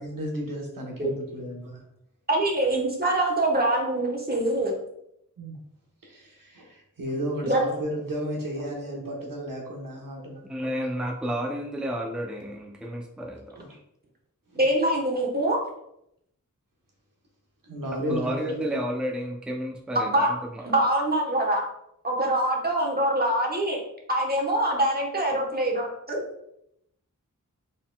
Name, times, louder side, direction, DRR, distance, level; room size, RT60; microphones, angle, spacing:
voice 1, 0.0-1.8 5.4-5.5 6.0-10.7 13.6-13.7 14.5-14.6 17.6-18.6, equal, 85° right, -1 dB, 1.1 m, -34 dB
voice 2, 2.3-4.8 7.4-7.6 8.6-9.2 14.6-15.6 18.5-18.6 19.9-20.3 20.6-21.6 22.0-23.8 24.1-26.2, right 1 dB, 30° right, -1 dB, 1.1 m, -24 dB
voice 3, 10.5-13.8 18.1-20.7, equal, 5° right, 1 dB, 0.5 m, -31 dB
4.1 x 3.8 x 2.3 m, 0.77 s
wide cardioid pair, 55°, 32 cm